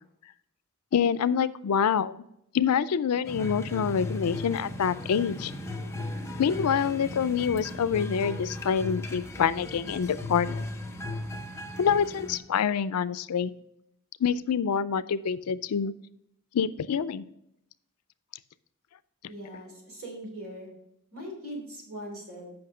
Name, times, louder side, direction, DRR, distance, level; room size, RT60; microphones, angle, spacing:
voice 1, 0.9-2.1 2.5-5.5 6.4-10.6 11.8-13.5 14.2-15.9 16.5-17.2, left 7 dB, 80° left, 16 dB, 0.4 m, -26 dB
sound 1, 3.2-12.4, left 2 dB, 10° left, 0.7 m, -37 dB
voice 2, 19.3-20.7 21.1-22.5, equal, 65° right, -1 dB, 3.2 m, -40 dB
7.9 x 5.6 x 4.9 m, 0.80 s
head